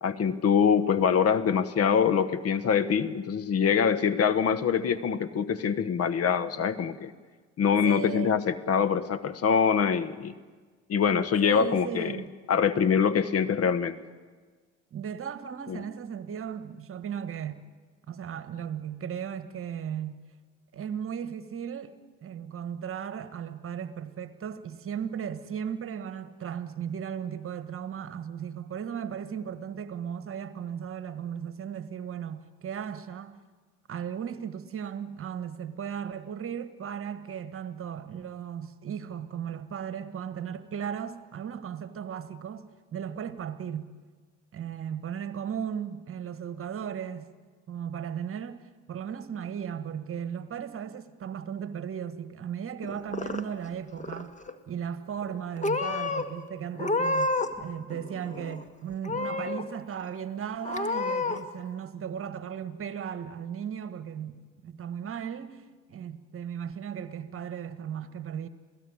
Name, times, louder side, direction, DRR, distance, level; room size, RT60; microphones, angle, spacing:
voice 1, 0.0-7.1 7.6-10.3 10.9-12.1 12.5-14.0 15.7-15.8, left 7 dB, 45° left, 1.3 m, -24 dB
voice 2, 7.8-8.4 11.4-12.3 14.9-17.6 18.1-20.2 20.7-22.0 22.2-33.4 33.9-43.9 44.5-47.3 47.7-54.3 54.7-65.6 65.9-68.5, right 8 dB, 40° right, 1.5 m, -36 dB
Purr / Meow, 52.8-53.7 54.0-54.5 55.2-55.4 55.6-56.2 56.7-57.6 57.9-58.6 59.0-59.6 60.1-60.2 60.6-61.4, left 3 dB, 20° left, 1.8 m, -29 dB
27.0 x 17.0 x 9.7 m
hypercardioid pair, 70°, 33 cm